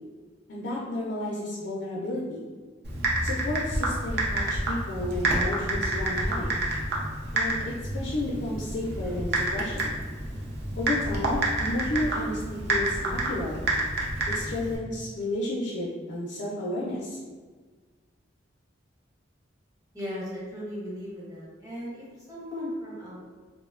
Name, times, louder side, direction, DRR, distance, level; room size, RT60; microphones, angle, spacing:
voice 1, 0.5-2.5 3.2-6.6 7.3-10.0 10.8-13.7 14.3-17.2, left 1 dB, 60° left, -5 dB, 0.4 m, -32 dB
Typing, 2.8-14.8, right 2 dB, 60° right, 0.5 m, -29 dB
voice 2, 19.9-23.2, equal, 20° right, -7 dB, 0.7 m, -37 dB
2.6 x 2.1 x 2.3 m, 1.4 s
head